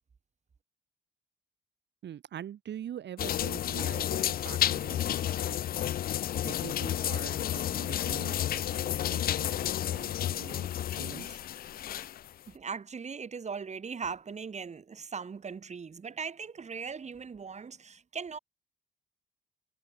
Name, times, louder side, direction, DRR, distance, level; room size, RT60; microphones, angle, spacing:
voice 1, 2.0-5.6 6.4-11.4, right 10 dB, 60° right, 1.9 m, -44 dB
sound 1, 3.2-12.3, left 11 dB, 50° left, 0.4 m, -31 dB
voice 2, 12.5-18.4, right 5 dB, 35° right, 2.1 m, -39 dB
cardioid pair, 90°, 20 cm